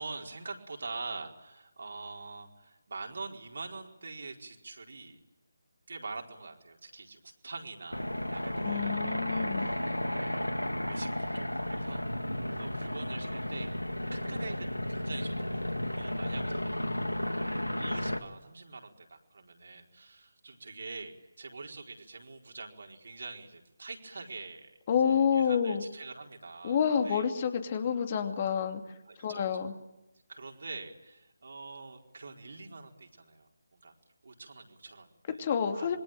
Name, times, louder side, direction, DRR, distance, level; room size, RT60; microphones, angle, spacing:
voice 1, 0.0-5.2 5.9-10.6 10.9-13.7 14.1-24.8 25.3-27.2 29.1-29.4 30.3-33.9 34.2-36.0, right 3 dB, 55° right, 2 dB, 4.5 m, -45 dB
sound 1, 7.9-18.2, left 1 dB, 90° left, 2.1 m, -33 dB
voice 2, 8.6-9.7 24.9-25.8 26.6-28.8 29.2-29.7 35.4-36.0, left 7 dB, 30° left, 7 dB, 2.6 m, -28 dB
27.0 x 23.0 x 9.1 m, 0.98 s
figure-of-eight pair, 155°, 0 cm